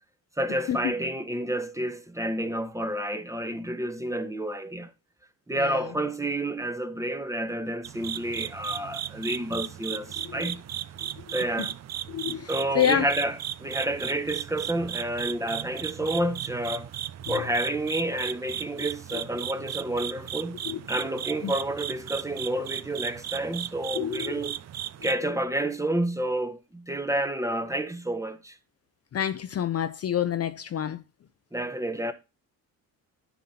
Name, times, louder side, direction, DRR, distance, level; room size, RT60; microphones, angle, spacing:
voice 1, 0.4-4.9 5.5-10.6 11.3-11.7 12.5-13.3 13.6-16.9 17.3-20.6 20.9-24.5 25.0-28.5 31.5-32.1, right 1 dB, 10° right, 1.2 m, -29 dB
voice 2, 5.5-5.9 9.9-10.5 11.2-11.7 12.1-13.1 17.3-17.5 19.1-19.2 20.6-20.8 21.4-21.6 23.9-24.3 25.0-25.3 29.1-31.0, left 9 dB, 40° left, 0.6 m, -29 dB
sound 1, 7.8-25.1, right 11 dB, 45° right, 0.6 m, -36 dB
9.9 x 5.9 x 4.2 m
cardioid pair, 100°, 37 cm